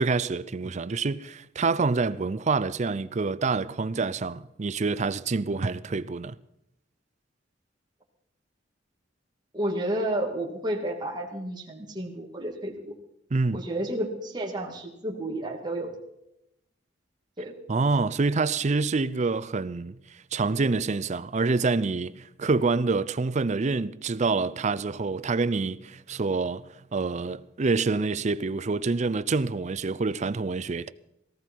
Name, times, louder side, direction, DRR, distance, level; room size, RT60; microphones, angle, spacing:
voice 1, 0.0-6.4 13.3-13.6 17.7-20.0 20.3-30.9, right 4 dB, 40° right, 0.5 m, -27 dB
voice 2, 9.5-13.0 13.5-15.9 17.4-17.5, right 1 dB, 25° right, 2.4 m, -31 dB
18.0 x 15.0 x 4.6 m
head